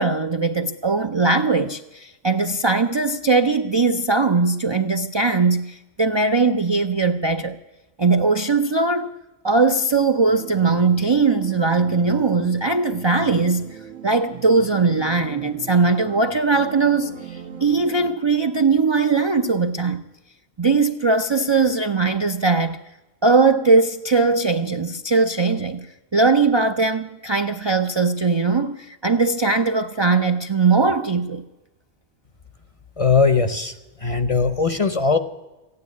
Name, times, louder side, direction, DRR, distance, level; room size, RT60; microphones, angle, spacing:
voice 1, 0.0-7.6 8.0-9.1 9.4-13.8 14.0-20.0 20.6-22.8 23.2-25.9 26.1-31.4, right 4 dB, 40° right, 0.4 m, -20 dB
sound 1, 10.2-18.1, right 8 dB, 85° right, 1.5 m, -39 dB
voice 2, 33.0-33.7 34.0-35.2, left 4 dB, 35° left, 0.7 m, -19 dB
15.0 x 9.6 x 9.5 m
omnidirectional pair, 1.3 m